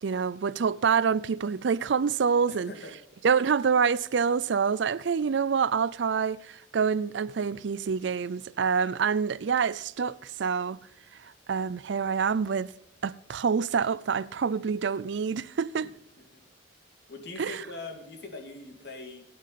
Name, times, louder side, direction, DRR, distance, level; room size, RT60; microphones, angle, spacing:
voice 1, 0.0-2.7 3.2-10.8 11.2-12.7 13.0-15.9 17.4-17.6, right 6 dB, 65° right, 0.4 m, -27 dB
voice 2, 2.5-2.9 16.3-16.4 17.1-19.3, left 3 dB, 55° left, 2.4 m, -42 dB
16.5 x 9.5 x 4.1 m
head